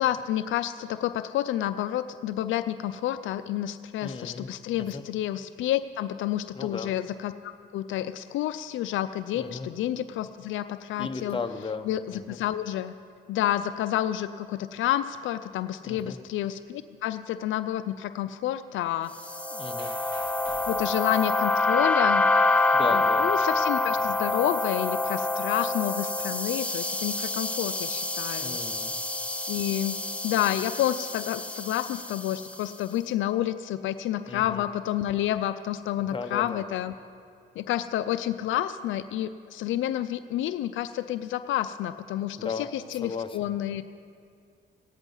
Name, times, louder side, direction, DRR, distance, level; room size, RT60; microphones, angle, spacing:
voice 1, 0.0-11.4 11.9-12.9 13.3-19.1 20.7-22.3 22.9-28.6 29.5-29.9 30.2-36.9 37.6-43.8, left 12 dB, 75° left, 11 dB, 0.5 m, -29 dB
voice 2, 4.0-4.5 4.8-5.0 6.5-6.9 9.3-9.7 11.0-12.4 15.8-16.2 19.5-19.9 22.7-23.3 28.4-28.9 34.3-34.6 36.0-36.6 42.4-42.7 43.0-43.5, left 4 dB, 25° left, 6 dB, 0.9 m, -35 dB
sound 1, 19.2-32.6, left 2 dB, 5° left, 0.4 m, -27 dB
sound 2, 19.8-22.0 22.4-25.0 25.8-25.9, right 4 dB, 65° right, 1.4 m, -54 dB
16.5 x 9.7 x 5.5 m, 2.3 s
cardioid pair, 90°, 20 cm